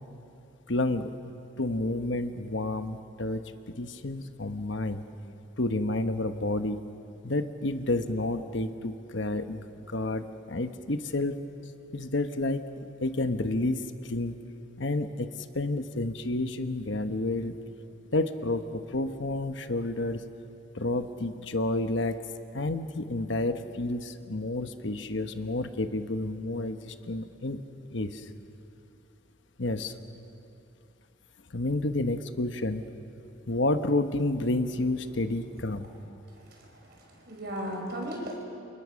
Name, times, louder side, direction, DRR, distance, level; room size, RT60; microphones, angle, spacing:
voice 1, 0.7-1.1 1.6-5.0 5.6-6.8 7.2-11.4 11.9-14.4 14.8-17.6 18.1-20.3 20.7-22.2 22.5-27.6 27.9-28.3 29.6-29.9 31.5-32.9 33.5-35.9, left 2 dB, 55° left, 8 dB, 1.1 m, -30 dB
voice 2, 36.5-38.5, equal, 50° right, 1 dB, 5.5 m, -37 dB
29.0 x 28.0 x 6.4 m, 2.7 s
head